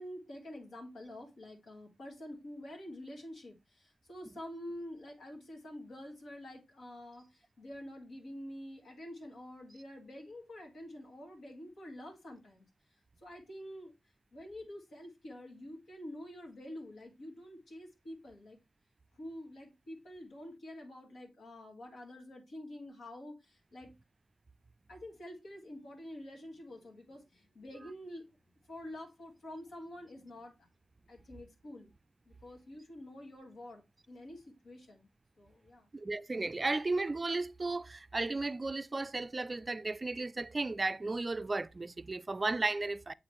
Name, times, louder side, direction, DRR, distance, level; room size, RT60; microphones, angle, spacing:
voice 1, 0.0-13.9 14.3-18.6 19.1-23.9 24.9-28.3 28.7-30.6 31.1-31.9 32.3-35.1 35.4-35.9, left 1 dB, 85° left, 2.0 m, -48 dB
voice 2, 35.9-43.1, right 3 dB, 30° right, 0.3 m, -34 dB
8.0 x 3.7 x 3.2 m
cardioid pair, 80°, 0 cm